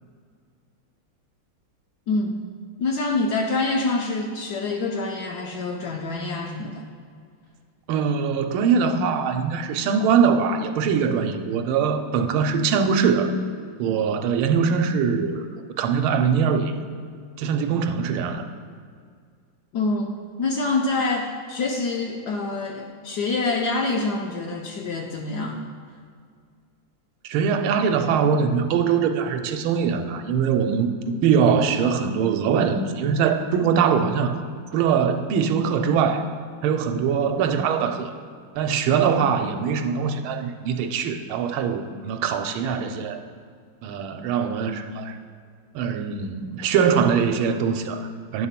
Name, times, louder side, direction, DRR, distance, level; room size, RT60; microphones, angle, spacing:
voice 1, 2.1-2.4 2.8-6.8 19.7-25.6, left 3 dB, 70° left, 2 dB, 1.0 m, -26 dB
voice 2, 7.9-13.3 13.8-16.7 17.4-18.4 27.2-34.4 34.7-36.2 36.6-38.1 38.5-43.2 43.8-45.1 45.7-48.5, right 6 dB, 85° right, 7 dB, 1.5 m, -22 dB
10.5 x 3.6 x 5.7 m, 2.1 s
omnidirectional pair, 2.3 m